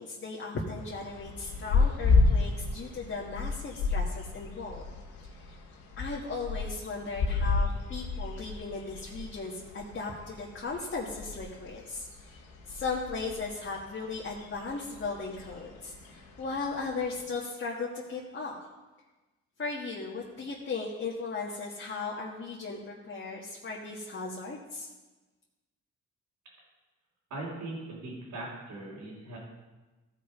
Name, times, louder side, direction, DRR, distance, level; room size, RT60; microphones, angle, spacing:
voice 1, 0.0-4.8 6.0-18.6 19.6-24.9, left 4 dB, 40° left, -3 dB, 1.6 m, -37 dB
sound 1, 0.8-17.2, left 4 dB, 85° left, 2.3 m, -32 dB
voice 2, 27.3-29.4, right 2 dB, 80° right, -8 dB, 3.3 m, -40 dB
14.5 x 5.3 x 5.1 m, 1.2 s
cardioid pair, 90°, 30 cm